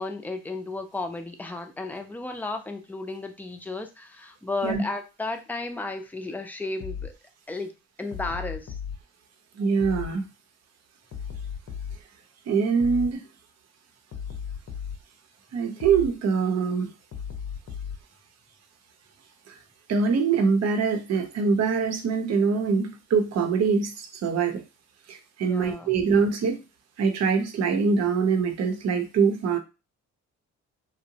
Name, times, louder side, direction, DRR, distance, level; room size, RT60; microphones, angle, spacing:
voice 1, 0.0-7.1 7.5-7.7 8.0-8.8 25.4-25.9, left 3 dB, 5° left, 5 dB, 0.4 m, -33 dB
sound 1, 6.8-7.1 8.1-9.0 9.8-10.1 11.1-12.0 12.8-13.1 14.1-15.0 15.8-16.1 17.1-18.0, left 7 dB, 55° left, 0.7 m, -35 dB
voice 2, 9.6-10.2 12.5-13.2 15.5-16.9 19.5-19.6 19.9-24.6 25.1-26.6 27.0-29.6, right 5 dB, 60° right, 5 dB, 0.7 m, -24 dB
2.8 x 2.1 x 2.7 m, 0.28 s
cardioid pair, 90°, 30 cm